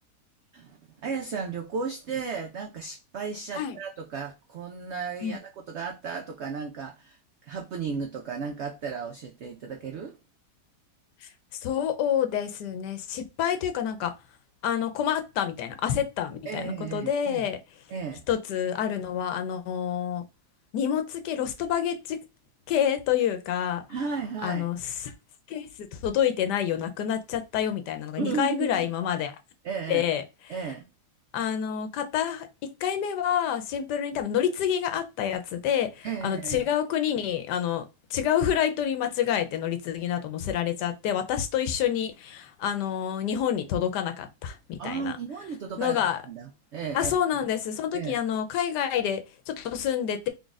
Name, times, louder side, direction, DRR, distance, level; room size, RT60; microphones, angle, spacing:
voice 1, 0.5-10.2 16.5-17.5 17.9-18.2 23.9-24.7 28.2-28.9 29.6-30.1 30.5-30.9 36.0-36.7 44.8-47.1 47.9-48.2, right 5 dB, 90° right, 0.6 m, -34 dB
voice 2, 11.6-14.1 14.6-17.6 18.3-20.2 20.7-22.2 22.7-23.8 24.4-25.1 25.5-29.3 29.9-30.2 31.3-32.5 32.8-37.8 38.1-45.1 45.8-46.2 46.9-50.3, left 9 dB, 90° left, 1.3 m, -28 dB
3.7 x 2.4 x 3.9 m
omnidirectional pair, 1.8 m